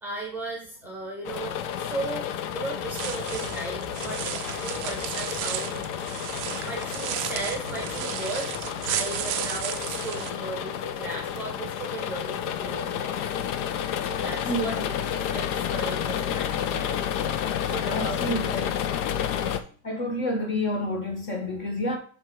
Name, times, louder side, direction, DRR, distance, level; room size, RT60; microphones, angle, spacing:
voice 1, 0.0-4.2 4.5-5.9 6.6-8.5 8.9-13.3 14.0-14.7 15.1-17.4 17.7-18.5, right 2 dB, 5° right, 1.0 m, -36 dB
sound 1, 1.2-19.6, left 9 dB, 55° left, 0.7 m, -31 dB
sound 2, 2.8-10.3, right 11 dB, 35° right, 0.4 m, -34 dB
voice 2, 14.2-14.8 17.9-18.7 19.8-22.0, left 1 dB, 25° left, 1.1 m, -29 dB
7.5 x 3.6 x 4.6 m
supercardioid pair, 175°, 43 cm